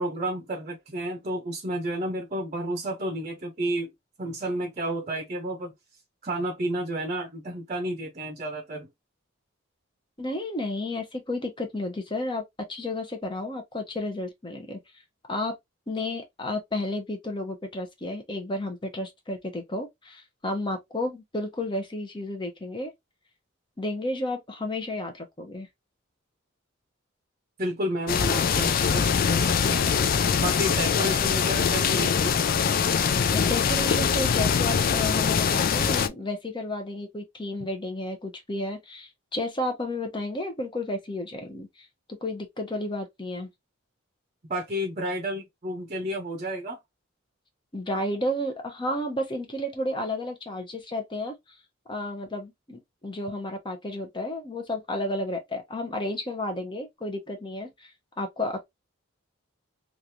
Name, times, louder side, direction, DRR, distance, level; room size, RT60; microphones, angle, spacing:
voice 1, 0.0-3.9 4.2-5.7 6.2-8.9 27.6-29.9 30.4-32.4 44.4-46.8, right 1 dB, 35° right, 0.7 m, -31 dB
voice 2, 10.2-12.4 12.7-14.8 15.3-15.6 15.9-22.9 23.8-25.7 33.3-41.9 42.2-43.5 47.7-51.4 51.9-57.9 58.2-58.7, left 1 dB, 25° left, 0.9 m, -32 dB
sound 1, 28.1-36.1, left 6 dB, 45° left, 0.3 m, -23 dB
3.2 x 2.5 x 2.7 m
head